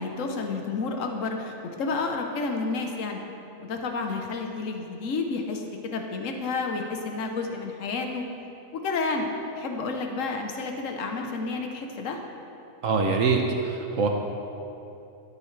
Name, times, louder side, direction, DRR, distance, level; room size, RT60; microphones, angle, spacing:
voice 1, 0.0-3.2 3.6-8.2 8.8-9.3 9.5-12.2, left 3 dB, 60° left, 3 dB, 1.3 m, -30 dB
voice 2, 12.8-14.1, right 4 dB, 65° right, 2 dB, 1.1 m, -24 dB
12.5 x 10.5 x 3.3 m, 2.8 s
omnidirectional pair, 1.6 m